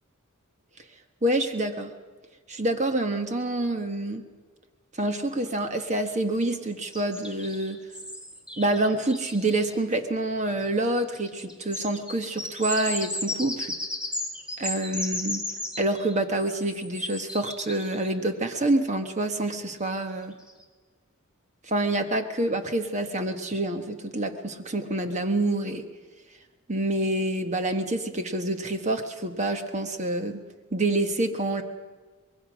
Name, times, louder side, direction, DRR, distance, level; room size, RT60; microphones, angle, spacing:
voice 1, 1.2-1.9 2.5-4.2 5.0-7.8 8.6-13.8 14.6-15.4 15.8-20.3 21.7-25.8 26.7-30.4 30.7-31.6, right 1 dB, 35° right, 7 dB, 1.2 m, -27 dB
sound 1, 6.9-9.7 10.6-10.7 10.9-18.1 19.9-20.0 20.4-20.6, left 2 dB, 5° right, 1.6 m, -35 dB
25.0 x 21.5 x 6.2 m, 1.4 s
head